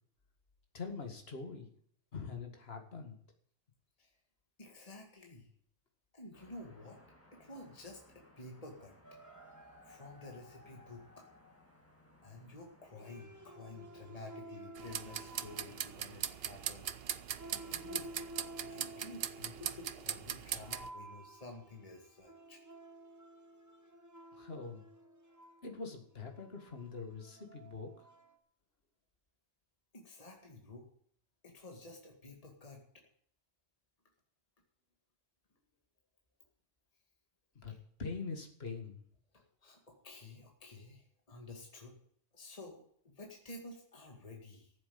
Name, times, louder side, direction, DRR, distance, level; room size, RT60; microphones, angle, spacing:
voice 1, 0.7-1.7 2.1-3.2 24.3-24.8 25.6-28.1 37.6-39.0, left 4 dB, 65° left, 3 dB, 2.3 m, -43 dB
voice 2, 4.6-5.5 6.1-7.0 7.3-8.9 9.8-11.3 12.2-16.9 17.5-18.3 18.6-22.6 29.9-30.9 31.4-32.8 37.7-37.8 39.3-41.9 42.3-44.7, left 2 dB, 35° left, 1 dB, 2.2 m, -51 dB
sound 1, 6.3-14.3, left 1 dB, 10° left, 2.3 m, -64 dB
sound 2, 9.0-11.7 12.9-28.4, right 1 dB, 15° right, 1.5 m, -53 dB
sound 3, 14.8-20.9, right 9 dB, 65° right, 0.9 m, -40 dB
14.0 x 7.8 x 8.6 m, 0.62 s
omnidirectional pair, 1.1 m